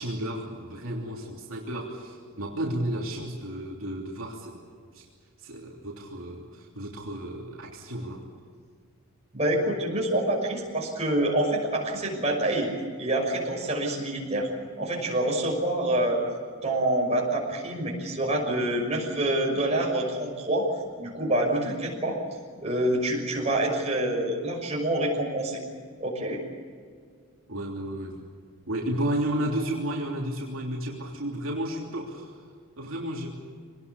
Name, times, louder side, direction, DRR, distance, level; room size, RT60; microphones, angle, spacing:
voice 1, 0.0-4.6 4.9-5.1 5.4-8.2 27.5-28.2 28.7-32.4 32.8-33.3, right 1 dB, 65° right, -2 dB, 3.2 m, -32 dB
voice 2, 9.3-12.7 13.0-14.5 14.8-16.2 16.6-20.7 21.0-22.2 22.6-25.6 26.0-26.4, right 1 dB, 30° right, -1 dB, 6.1 m, -26 dB
25.5 x 19.5 x 8.4 m, 2.1 s
head